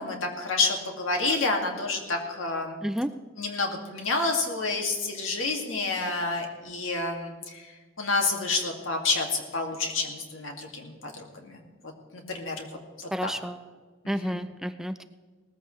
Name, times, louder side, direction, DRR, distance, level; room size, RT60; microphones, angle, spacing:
voice 1, 0.0-2.8 3.4-7.7 8.0-12.8 13.2-13.3 14.0-14.4, left 3 dB, 85° left, 2 dB, 2.4 m, -29 dB
voice 2, 13.1-13.6 14.1-15.0, equal, ahead, 10 dB, 0.3 m, -30 dB
19.0 x 14.5 x 3.3 m, 1.5 s
head